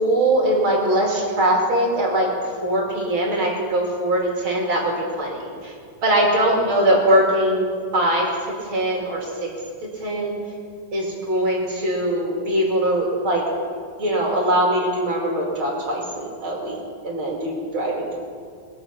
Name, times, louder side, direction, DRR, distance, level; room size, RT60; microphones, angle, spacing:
voice 1, 0.0-5.7 6.0-8.3 8.7-9.5 9.8-10.4 10.9-13.5 14.0-18.2, right 1 dB, 40° right, -2 dB, 2.9 m, -22 dB
21.0 x 7.9 x 5.7 m, 2.2 s
omnidirectional pair, 4.2 m